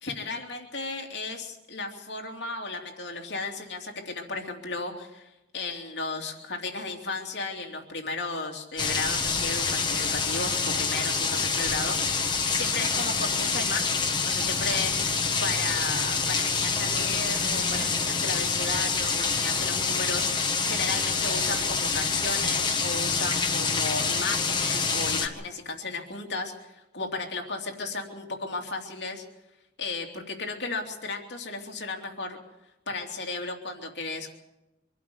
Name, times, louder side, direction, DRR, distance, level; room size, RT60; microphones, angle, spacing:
voice 1, 0.0-4.9 5.5-14.9 15.4-29.2 29.8-32.4 32.9-34.3, left 3 dB, 65° left, 1 dB, 2.9 m, -34 dB
sound 1, 8.8-25.3, left 4 dB, 25° left, 1.7 m, -27 dB
25.0 x 12.0 x 9.6 m, 0.95 s
head